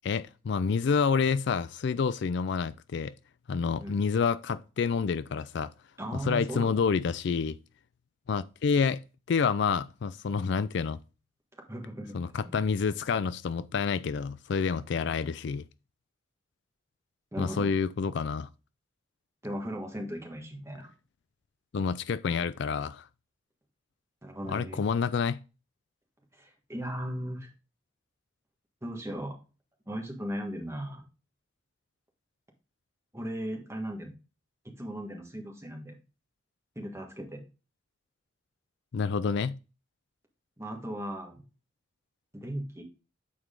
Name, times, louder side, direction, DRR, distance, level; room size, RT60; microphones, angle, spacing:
voice 1, 0.0-3.1 3.5-5.7 6.2-7.6 8.3-9.0 9.3-11.0 12.1-15.6 17.4-18.5 21.7-23.0 24.5-25.4 38.9-39.6, left 5 dB, 60° left, 0.4 m, -28 dB
voice 2, 6.0-6.7 11.6-12.2 17.3-17.7 19.4-20.9 24.2-24.8 26.3-27.5 28.8-29.4 29.9-31.0 33.1-34.1 34.8-36.0 36.7-37.4 40.6-41.4 42.3-42.8, equal, 15° right, 1.6 m, -37 dB
8.6 x 4.6 x 3.7 m
head